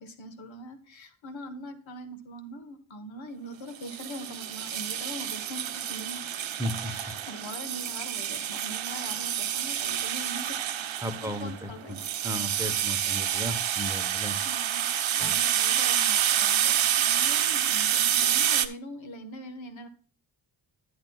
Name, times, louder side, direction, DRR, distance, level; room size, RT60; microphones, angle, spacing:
voice 1, 0.0-6.3 6.8-10.7 11.2-12.0 12.9-13.3 14.4-19.9, equal, 70° left, 8 dB, 1.3 m, -42 dB
sound 1, 3.8-18.7, right 10 dB, 70° right, 0.8 m, -28 dB
voice 2, 6.6-6.9 11.0-11.7 12.2-14.4 15.2-15.3, left 1 dB, 5° right, 7 dB, 1.0 m, -34 dB
12.5 x 7.8 x 2.4 m, 0.42 s
wide cardioid pair, 95°, 48 cm